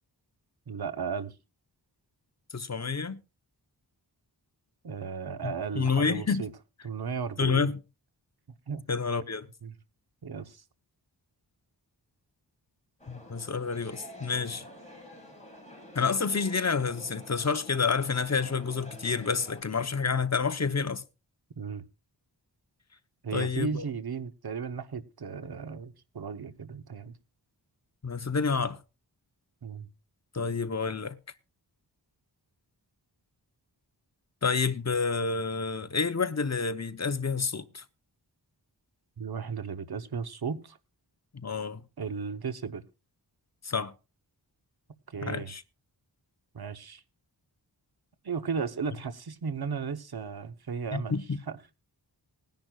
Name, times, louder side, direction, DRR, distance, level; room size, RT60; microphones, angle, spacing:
voice 1, 0.7-1.3 4.8-6.5 6.8-7.7 8.7-8.9 9.6-9.7 10.2-10.6 21.6-21.8 23.2-27.1 29.6-29.9 39.2-40.8 42.0-42.8 45.1-45.5 46.5-47.0 48.2-51.2 51.5-51.6, right 6 dB, 60° right, 0.9 m, -35 dB
voice 2, 2.5-3.2 5.4-6.5 7.4-7.8 8.9-9.5 13.1-14.6 15.9-21.0 23.3-23.8 28.0-28.8 30.3-31.2 34.4-37.8 41.3-41.8 43.6-43.9 45.2-45.6 50.9-51.4, left 5 dB, 40° left, 0.8 m, -29 dB
sound 1, 13.0-19.6, equal, 15° left, 4.9 m, -49 dB
20.5 x 10.5 x 2.3 m
wide cardioid pair, 70°, 43 cm